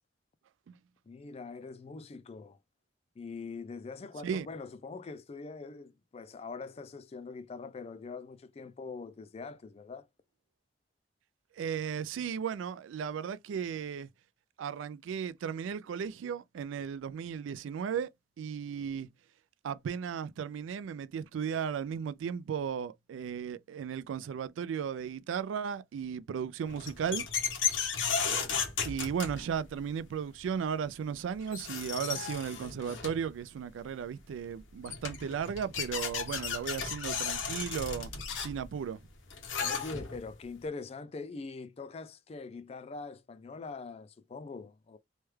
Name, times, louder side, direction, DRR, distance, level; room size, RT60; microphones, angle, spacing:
voice 1, 1.1-2.6 3.2-10.1 39.6-45.0, left 4 dB, 30° left, 0.3 m, -43 dB
voice 2, 11.6-14.1 14.6-18.1 18.4-19.1 19.6-27.3 28.8-38.1 38.4-39.0, right 7 dB, 85° right, 0.3 m, -35 dB
sound 1, 26.7-29.8 31.1-31.2 31.5-33.3 34.5-34.6 34.8-40.3, left 6 dB, 85° left, 0.9 m, -34 dB
3.2 x 2.2 x 3.1 m
head